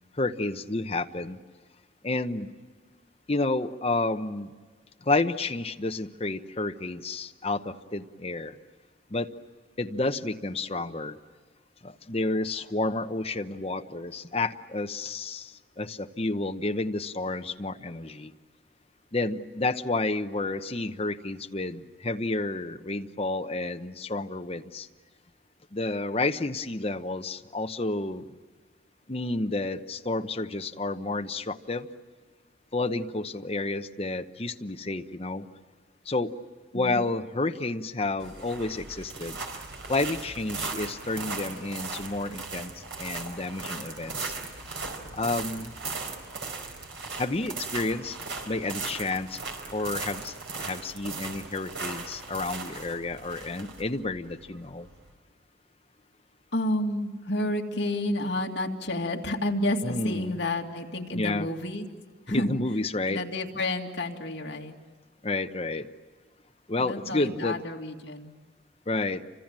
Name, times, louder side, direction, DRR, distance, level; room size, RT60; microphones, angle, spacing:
voice 1, 0.2-1.4 2.0-2.5 3.3-4.5 5.0-8.5 9.1-9.3 9.8-11.2 11.8-18.3 19.1-24.9 25.7-28.3 29.1-31.9 32.7-35.5 36.1-36.3 36.7-39.4 39.9-44.3 45.1-45.8 47.2-48.2 48.5-49.4 49.7-54.9 59.8-60.4 61.1-61.5 62.3-63.2 65.2-65.9 66.7-67.6 68.9-69.2, left 2 dB, 30° left, 6 dB, 0.9 m, -30 dB
sound 1, 38.2-55.1, right 4 dB, 65° right, 4.6 m, -38 dB
voice 2, 56.5-61.9 62.3-62.6 63.1-64.7 66.8-68.3, left 1 dB, 60° left, 1 dB, 2.5 m, -30 dB
29.5 x 25.5 x 7.6 m, 1.5 s
head